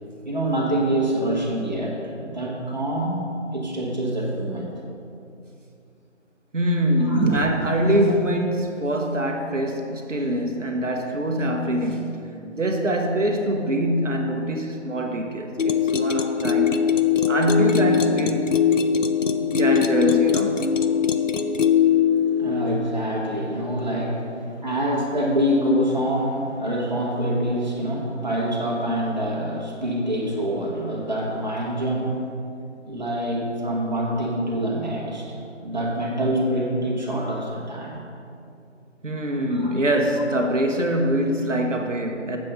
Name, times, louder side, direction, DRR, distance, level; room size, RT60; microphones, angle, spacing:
voice 1, 0.2-4.7 7.0-7.4 22.1-32.2 32.8-38.0 39.5-39.8, right 1 dB, 35° right, -3 dB, 1.4 m, -26 dB
voice 2, 6.5-12.3 12.5-16.9 17.3-18.7 19.4-20.7 39.0-42.4, equal, 85° right, 3 dB, 1.1 m, -24 dB
sound 1, 15.6-22.8, left 7 dB, 85° left, 0.7 m, -21 dB
7.5 x 7.2 x 5.2 m, 2.6 s
figure-of-eight pair, 175°, 37 cm